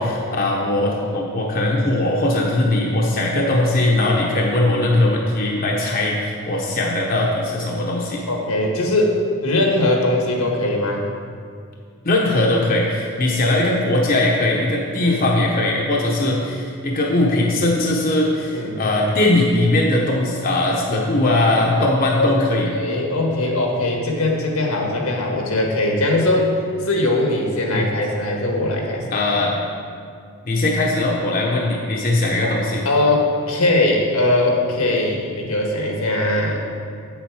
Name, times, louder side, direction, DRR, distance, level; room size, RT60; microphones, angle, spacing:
voice 1, 0.0-8.2 12.0-22.7 27.7-27.9 29.1-29.7 30.4-32.9, left 2 dB, 40° left, -2 dB, 0.9 m, -20 dB
voice 2, 8.3-9.1 9.4-11.0 15.0-15.2 18.5-18.8 22.2-22.3 22.7-26.5 26.8-29.0 32.8-36.6, left 2 dB, 80° left, 0 dB, 1.5 m, -20 dB
8.0 x 7.3 x 4.8 m, 2.2 s
head